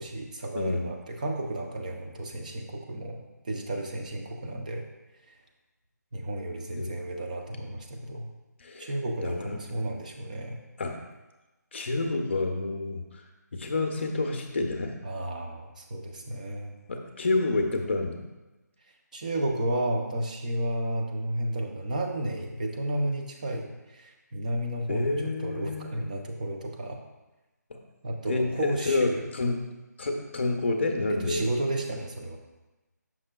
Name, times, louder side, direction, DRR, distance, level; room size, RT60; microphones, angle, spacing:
voice 1, 0.0-3.2 3.4-4.8 6.1-8.3 8.8-10.6 15.0-16.7 19.1-25.1 25.4-27.0 28.0-29.3 31.1-32.4, right 1 dB, 25° right, 2 dB, 0.6 m, -32 dB
voice 2, 8.6-8.9 9.2-9.6 10.8-11.0 11.7-13.0 13.5-15.0 16.9-18.2 24.9-26.0 27.7-27.8 28.3-29.7 30.0-31.5, left 2 dB, 40° left, 3 dB, 0.7 m, -28 dB
7.4 x 6.0 x 2.2 m, 1.1 s
figure-of-eight pair, 170°, 10 cm